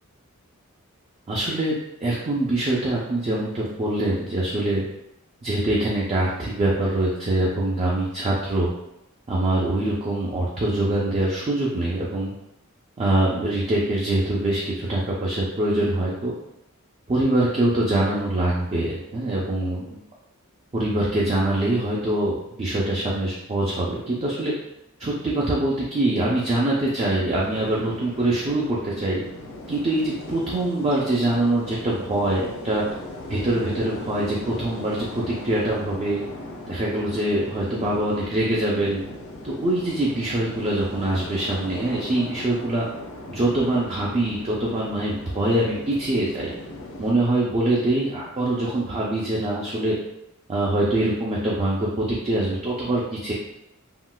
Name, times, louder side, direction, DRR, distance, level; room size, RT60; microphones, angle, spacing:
voice 1, 1.3-4.8 5.4-8.7 9.3-12.3 13.0-16.3 17.1-19.8 20.7-24.5 25.0-29.2 29.7-32.8 33.3-36.2 36.7-39.0 39.4-42.9 43.3-46.5 47.0-49.9 50.5-53.3, right 1 dB, 30° right, -5 dB, 0.4 m, -24 dB
sound 1, 27.3-47.1, left 1 dB, 65° left, 0.5 m, -38 dB
3.7 x 2.3 x 2.2 m, 0.87 s
head